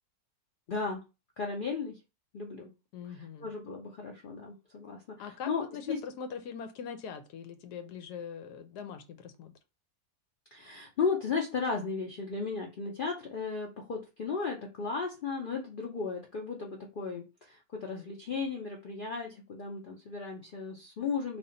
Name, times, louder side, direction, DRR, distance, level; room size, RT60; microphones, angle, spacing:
voice 1, 0.7-1.0 1.4-2.0 2.3-2.7 3.2-6.0 10.5-21.4, left 5 dB, 70° left, 0.5 m, -35 dB
voice 2, 2.9-3.5 5.2-9.5, left 7 dB, 90° left, 1.2 m, -42 dB
3.4 x 2.3 x 3.8 m
omnidirectional pair, 1.7 m